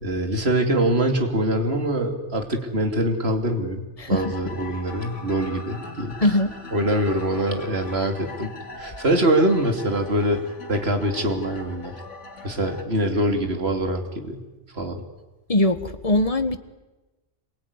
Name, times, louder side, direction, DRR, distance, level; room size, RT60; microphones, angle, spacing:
voice 1, 0.0-6.1 6.7-10.4 10.7-11.9 12.4-14.4 14.7-15.0, right 1 dB, 60° right, 5 dB, 3.1 m, -24 dB
voice 2, 4.0-4.5 6.2-6.5 15.5-16.6, left 1 dB, 30° left, 11 dB, 1.5 m, -21 dB
sound 1, 4.1-12.8, left 2 dB, 85° left, 2.9 m, -40 dB
26.5 x 22.5 x 9.7 m, 1.1 s
omnidirectional pair, 1.2 m